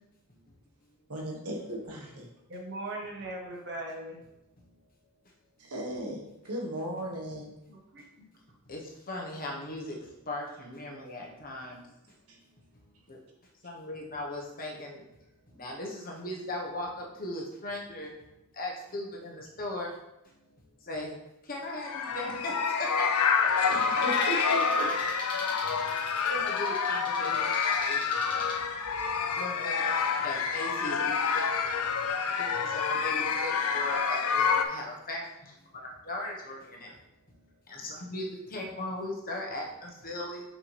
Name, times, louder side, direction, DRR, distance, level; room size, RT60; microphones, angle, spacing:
voice 1, 1.1-2.3 5.6-7.5 12.3-12.4 23.5-24.8, right 1 dB, 90° right, -1 dB, 1.5 m, -37 dB
voice 2, 2.5-4.2 7.7-8.3, right 1 dB, 55° right, -1 dB, 1.6 m, -39 dB
voice 3, 8.7-11.8 12.7-13.2 13.6-15.0 15.5-20.0 20.2-20.3 20.8-21.1 21.4-23.7 25.5-25.6 26.2-28.2 28.4-31.9 32.4-36.9 37.7-40.4, left 1 dB, 40° left, -1 dB, 1.3 m, -38 dB
sound 1, 21.7-34.6, left 6 dB, 75° left, 0.6 m, -28 dB
sound 2, 23.6-28.6, left 1 dB, 20° left, 1.6 m, -43 dB
5.8 x 5.7 x 3.4 m, 0.88 s
head